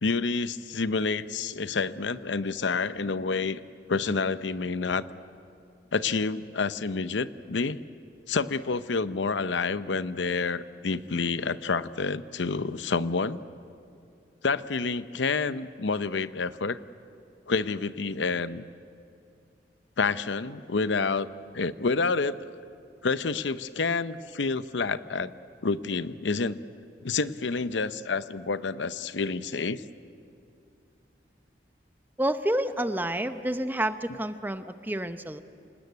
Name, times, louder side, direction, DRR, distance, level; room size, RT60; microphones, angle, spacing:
voice 1, 0.0-3.6 3.9-5.0 5.9-7.8 8.3-13.4 14.4-16.8 17.5-18.6 20.0-21.3 21.5-22.4 23.0-25.3 25.6-26.6 27.0-29.8, left 4 dB, 85° left, 14 dB, 0.7 m, -28 dB
voice 2, 32.2-35.4, right 1 dB, 10° right, 10 dB, 0.7 m, -29 dB
27.0 x 19.0 x 9.5 m, 2.5 s
head